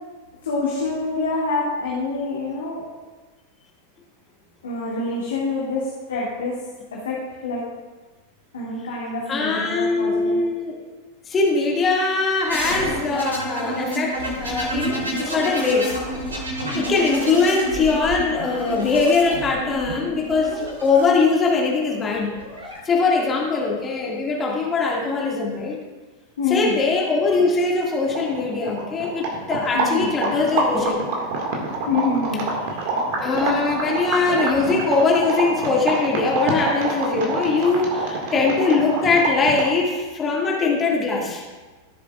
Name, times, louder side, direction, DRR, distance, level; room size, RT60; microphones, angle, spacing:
voice 1, 0.4-2.8 4.6-6.5 6.9-7.6 8.5-10.4 26.4-26.8 29.7-30.1 31.9-32.9, left 3 dB, 65° left, -5 dB, 2.0 m, -26 dB
voice 2, 9.3-10.8 11.3-14.2 14.4-16.0 16.7-22.3 22.8-25.8 26.5-31.1 33.2-41.4, left 4 dB, 20° left, -2 dB, 1.9 m, -21 dB
sound 1, 12.5-21.0 22.2-22.8, right 1 dB, 75° right, 3.3 m, -29 dB
sound 2, 27.8-27.9 28.1-39.8, right 3 dB, 50° right, 1.9 m, -26 dB
17.0 x 7.1 x 2.4 m, 1.3 s
figure-of-eight pair, 90°, 0 cm